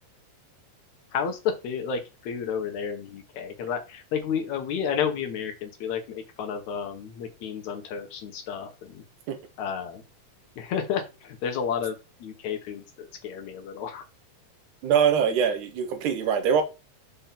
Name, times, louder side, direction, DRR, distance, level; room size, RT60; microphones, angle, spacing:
voice 1, 1.1-9.0 9.6-10.0 10.6-14.0, left 7 dB, 70° left, 2.2 m, -31 dB
voice 2, 14.8-16.6, right 7 dB, 75° right, 2.3 m, -23 dB
5.6 x 3.6 x 5.7 m
omnidirectional pair, 3.7 m